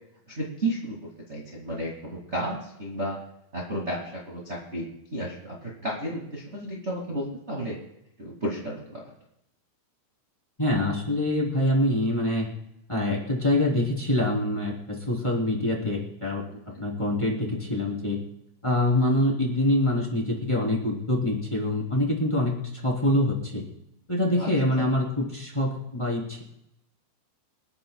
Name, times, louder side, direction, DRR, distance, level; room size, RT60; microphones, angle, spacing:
voice 1, 0.3-3.2 3.5-4.9 5.1-7.8 8.2-9.0 24.4-24.5 24.8-24.9, right 1 dB, 25° right, -4 dB, 1.5 m, -32 dB
voice 2, 10.6-12.5 12.9-18.2 18.6-23.6 24.1-26.4, left 1 dB, 10° left, -3 dB, 2.7 m, -25 dB
27.0 x 12.0 x 2.4 m, 0.83 s
omnidirectional pair, 5.4 m